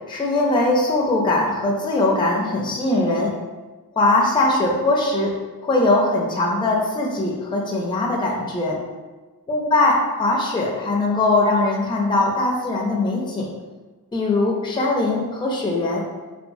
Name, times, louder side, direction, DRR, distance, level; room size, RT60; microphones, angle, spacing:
voice 1, 0.1-3.3 4.0-5.3 5.6-8.8 9.5-13.5 14.1-16.0, left 2 dB, 15° left, -2 dB, 0.4 m, -21 dB
3.0 x 2.0 x 2.6 m, 1.3 s
cardioid pair, 70°, 36 cm